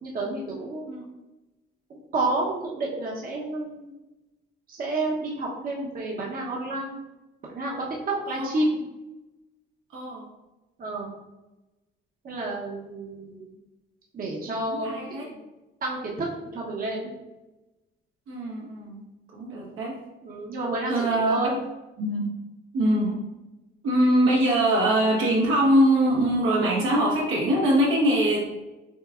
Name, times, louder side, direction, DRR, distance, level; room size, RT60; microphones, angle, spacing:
voice 1, 0.0-0.9 1.9-3.9 4.7-7.0 7.5-8.9 10.8-11.1 12.2-13.5 14.1-15.4 15.8-17.1 20.2-21.6, right 2 dB, 45° right, -3 dB, 0.9 m, -30 dB
voice 2, 9.9-10.3 14.7-15.3 18.3-19.0 19.3-19.9 20.9-21.4 22.0-22.3 22.7-23.2 23.8-28.4, right 1 dB, 85° right, -4 dB, 1.3 m, -23 dB
6.5 x 2.2 x 2.4 m, 1.0 s
cardioid pair, 90°, 20 cm